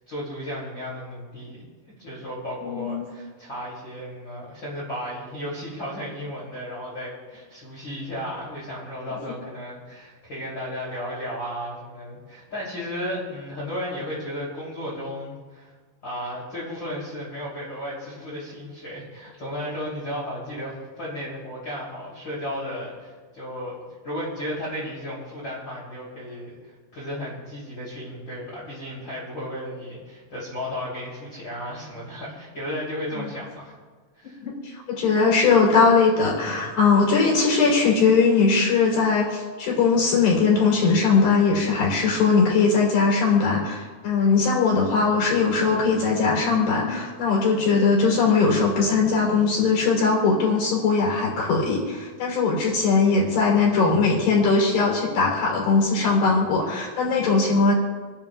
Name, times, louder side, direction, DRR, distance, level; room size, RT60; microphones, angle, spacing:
voice 1, 0.1-15.7 16.0-23.8 24.0-33.7 34.2-34.4, equal, 30° left, -6 dB, 3.6 m, -34 dB
voice 2, 2.6-3.0 33.2-33.3 34.2-57.7, left 4 dB, 80° left, -4 dB, 5.7 m, -20 dB
29.5 x 10.5 x 2.4 m, 1.4 s
omnidirectional pair, 4.2 m